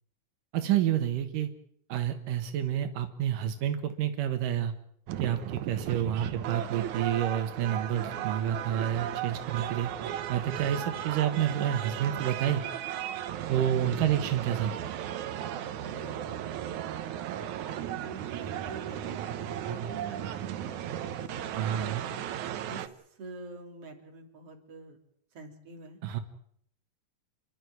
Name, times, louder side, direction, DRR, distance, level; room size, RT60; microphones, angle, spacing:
voice 1, 0.5-1.5 1.9-4.7 5.2-9.9 10.3-12.6 13.5-14.8 21.5-22.0 26.0-26.2, right 10 dB, 85° right, 7 dB, 3.0 m, -29 dB
sound 1, 5.1-22.9, right 10 dB, 70° right, 2.4 m, -36 dB
voice 2, 15.6-16.4 17.9-20.8 21.2-22.8 23.1-25.0 25.3-26.0, right 3 dB, 45° right, 2 dB, 4.1 m, -47 dB
29.5 x 12.0 x 9.5 m, 0.70 s
omnidirectional pair, 3.7 m